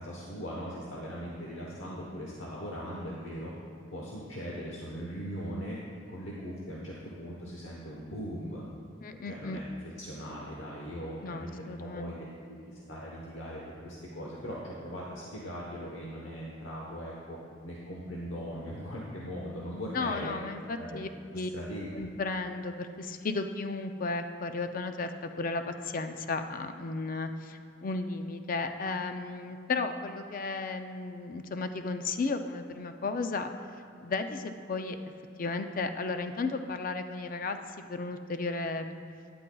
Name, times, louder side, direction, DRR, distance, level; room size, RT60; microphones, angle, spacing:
voice 1, 0.0-3.5 3.9-5.8 6.1-8.6 9.1-9.6 10.0-17.4 17.6-20.4 20.8-21.0 21.5-21.9, equal, 75° left, -4 dB, 1.1 m, -40 dB
voice 2, 9.0-9.6 11.2-12.1 19.9-21.5 21.9-33.5 34.0-35.0 35.4-38.9, left 3 dB, 45° left, 7 dB, 0.5 m, -34 dB
12.0 x 10.0 x 2.3 m, 2.3 s
head